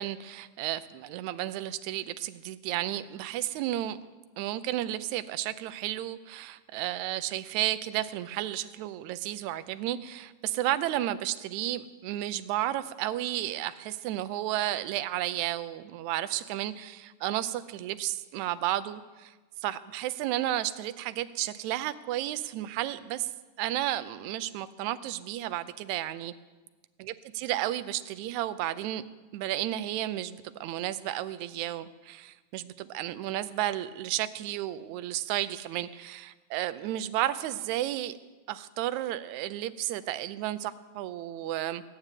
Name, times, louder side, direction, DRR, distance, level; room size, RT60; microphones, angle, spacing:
voice 1, 0.0-4.0 4.4-19.3 19.6-23.3 23.6-26.3 27.0-29.0 29.3-38.2 38.5-41.8, right 13 dB, 80° right, 13 dB, 2.0 m, -32 dB
17.0 x 7.4 x 9.7 m, 1.3 s
omnidirectional pair, 3.3 m